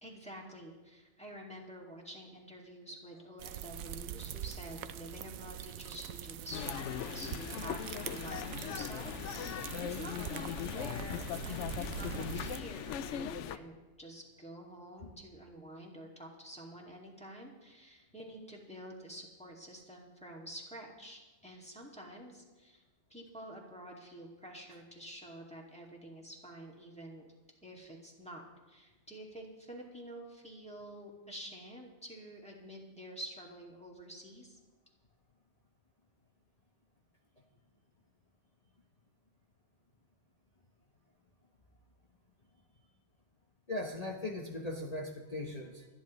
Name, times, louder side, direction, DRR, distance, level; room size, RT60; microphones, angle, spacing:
voice 1, 0.0-22.8 23.1-27.3 27.6-34.6, right 1 dB, 5° left, -2 dB, 2.2 m, -48 dB
sound 1, 3.4-12.6, right 10 dB, 85° right, 1.0 m, -43 dB
sound 2, 6.5-13.6, left 10 dB, 70° left, 0.8 m, -39 dB
voice 2, 43.7-45.9, left 2 dB, 30° left, -1 dB, 1.1 m, -39 dB
29.0 x 10.0 x 3.1 m, 1.2 s
omnidirectional pair, 1.4 m